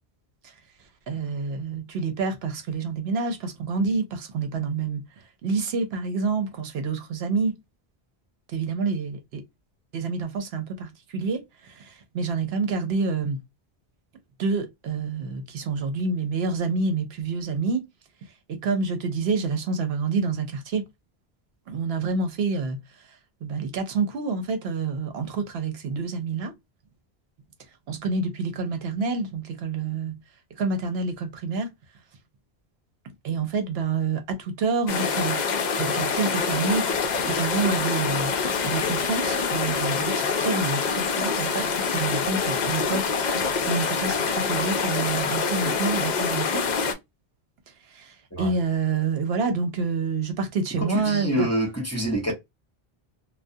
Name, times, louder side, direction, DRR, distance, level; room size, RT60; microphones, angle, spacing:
voice 1, 1.1-5.0 5.4-7.5 8.5-9.4 9.9-11.4 11.7-13.4 14.4-17.8 18.5-20.8 21.7-22.8 23.4-26.5 27.9-30.2 30.6-31.7 33.2-35.4 35.8-38.3 38.6-41.7 41.9-46.6 47.9-51.5, right 4 dB, 75° right, 0.8 m, -28 dB
sound 1, 34.9-46.9, left 5 dB, 55° left, 0.5 m, -25 dB
voice 2, 50.8-52.3, right 1 dB, 15° left, 0.8 m, -26 dB
2.3 x 2.2 x 2.5 m
omnidirectional pair, 1.1 m